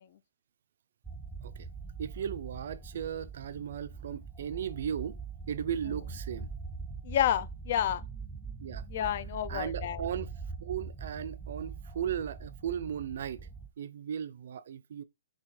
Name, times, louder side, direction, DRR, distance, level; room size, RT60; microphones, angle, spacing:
sound 1, 1.0-13.7, right 5 dB, 5° right, 0.6 m, -42 dB
voice 1, 2.0-5.2 5.5-6.5 8.6-8.8 9.5-10.3 10.6-13.5 13.8-15.0, right 8 dB, 60° right, 0.4 m, -36 dB
voice 2, 7.0-8.0 8.9-10.0, left 10 dB, 45° left, 0.4 m, -29 dB
6.0 x 2.8 x 3.2 m
hypercardioid pair, 155°, 0 cm